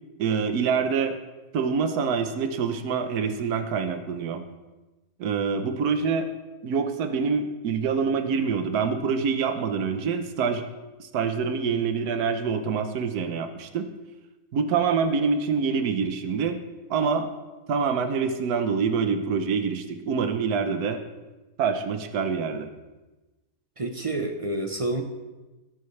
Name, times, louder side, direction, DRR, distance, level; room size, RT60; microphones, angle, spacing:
voice 1, 0.2-1.1 1.5-4.4 5.2-6.3 6.6-10.7 11.0-13.9 14.5-16.6 16.9-17.3 17.7-21.0 21.6-22.7, right 5 dB, 75° right, 8 dB, 1.4 m, -26 dB
voice 2, 23.8-25.0, right 2 dB, 30° right, 5 dB, 0.7 m, -28 dB
18.0 x 9.3 x 3.3 m, 1.1 s
omnidirectional pair, 1.7 m